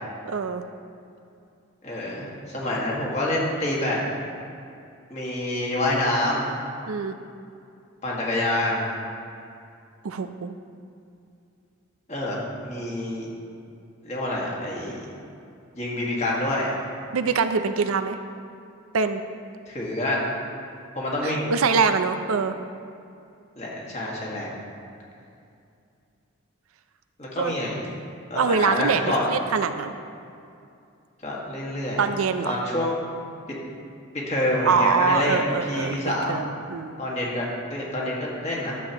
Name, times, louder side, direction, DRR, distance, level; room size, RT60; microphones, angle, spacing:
voice 1, 0.2-0.6 6.9-7.2 10.0-10.5 17.1-18.2 18.9-19.2 21.2-22.6 27.4-27.5 28.4-29.0 29.3-30.0 32.0-32.6 34.6-36.0 36.3-36.9, right 5 dB, 80° right, 9 dB, 0.5 m, -24 dB
voice 2, 1.8-4.0 5.1-6.5 8.0-8.9 12.1-13.3 14.0-15.1 15.8-16.7 19.7-20.2 21.0-21.5 23.6-24.5 27.2-27.8 28.3-29.2 31.2-32.0 32.4-33.0 34.1-35.4 35.7-36.3 37.0-38.8, left 1 dB, 30° left, -4 dB, 1.7 m, -27 dB
12.5 x 7.6 x 2.9 m, 2.5 s
head